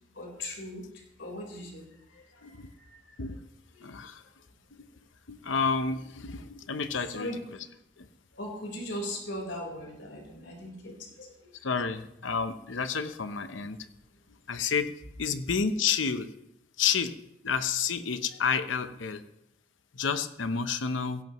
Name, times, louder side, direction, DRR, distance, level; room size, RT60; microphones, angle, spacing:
voice 1, 0.2-0.8 1.2-1.8 2.4-2.5 2.9-3.0 3.7-3.8 7.1-7.4 8.4-11.3, left 1 dB, 70° left, 1 dB, 4.3 m, -38 dB
voice 2, 3.8-4.2 5.3-7.3 8.0-8.1 11.6-13.8 14.5-14.9 15.2-16.3 16.8-17.1 17.4-19.2 19.9-21.2, left 6 dB, 85° left, 10 dB, 0.8 m, -30 dB
16.5 x 16.0 x 3.1 m, 0.82 s
head